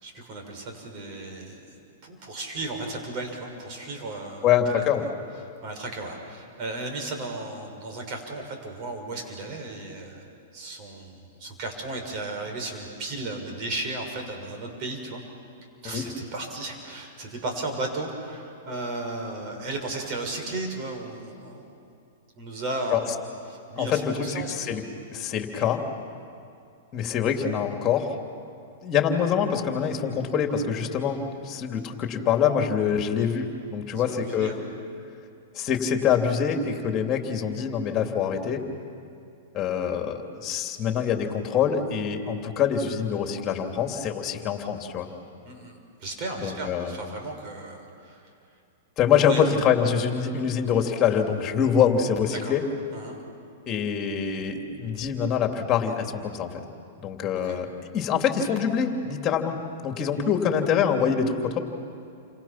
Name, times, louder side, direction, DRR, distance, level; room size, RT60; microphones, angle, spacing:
voice 1, 0.0-4.8 5.6-10.2 10.5-15.2 15.8-21.8 22.4-23.2 23.5-24.5 33.9-34.7 45.4-48.3 49.1-49.5 52.3-52.5 52.9-53.2 57.4-57.6, right 2 dB, 45° right, 3 dB, 6.3 m, -35 dB
voice 2, 4.4-5.1 15.9-16.0 22.9-23.0 23.8-24.8 25.1-25.8 26.9-28.1 28.8-34.5 35.5-38.6 39.5-45.1 46.4-47.0 49.0-52.6 53.7-56.5 57.0-61.6, left 7 dB, 30° left, 4 dB, 3.0 m, -25 dB
29.5 x 26.5 x 6.0 m, 2.5 s
hypercardioid pair, 120°, 0 cm